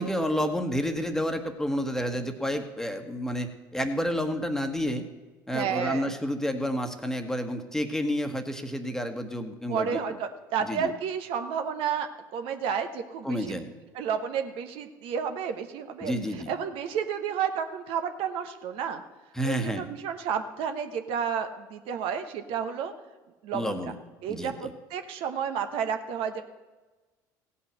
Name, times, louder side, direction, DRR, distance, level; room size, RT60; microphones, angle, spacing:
voice 1, 0.0-5.0 5.5-10.0 10.7-10.9 13.2-13.7 16.0-16.5 19.3-19.9 23.5-23.9 24.3-24.7, equal, 5° left, 6 dB, 1.4 m, -30 dB
voice 2, 5.5-6.1 9.7-12.1 12.3-13.6 13.9-19.0 19.4-22.9 23.4-23.9 24.2-26.4, right 7 dB, 65° right, 7 dB, 1.0 m, -31 dB
16.0 x 5.6 x 7.5 m, 1.2 s
hypercardioid pair, 75°, 10 cm